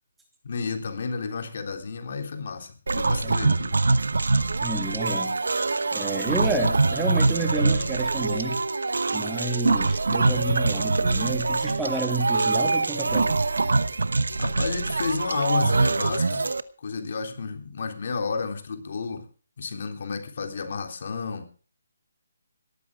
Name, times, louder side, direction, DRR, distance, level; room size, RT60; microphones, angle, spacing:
voice 1, 0.4-3.7 14.4-16.5 16.8-19.2 19.6-21.5, left 4 dB, 55° left, 5 dB, 3.5 m, -31 dB
sound 1, 2.9-16.6, right 3 dB, 85° right, 1.1 m, -24 dB
voice 2, 3.2-3.6 4.6-5.3 5.9-8.6 9.1-13.4, right 2 dB, 5° right, 2 dB, 2.6 m, -30 dB
18.0 x 14.0 x 3.7 m, 0.38 s
hypercardioid pair, 160°, 0 cm